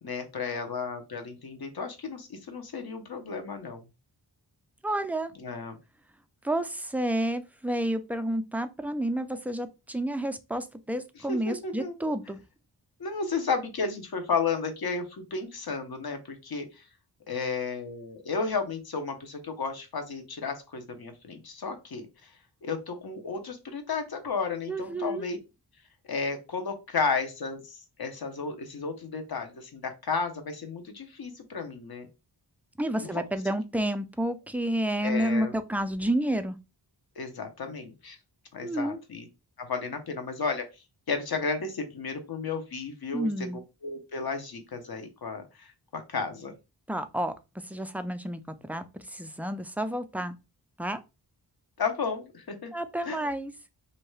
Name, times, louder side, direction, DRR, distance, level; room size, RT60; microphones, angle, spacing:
voice 1, 0.0-3.8 5.4-5.8 11.3-11.9 13.0-16.8 17.3-22.1 22.6-25.4 26.1-32.1 33.0-33.2 35.0-35.5 37.2-38.2 38.5-39.3 39.6-40.6 41.1-43.3 43.8-46.5 51.8-52.7 53.0-53.3, left 4 dB, 60° left, 0.8 m, -33 dB
voice 2, 4.8-5.3 6.4-12.4 24.7-25.3 32.8-36.6 38.6-39.0 43.1-43.6 46.9-47.3 47.6-50.4 50.8-51.0 52.7-53.5, right 1 dB, 5° right, 0.3 m, -30 dB
2.7 x 2.2 x 3.1 m
cardioid pair, 60°, 42 cm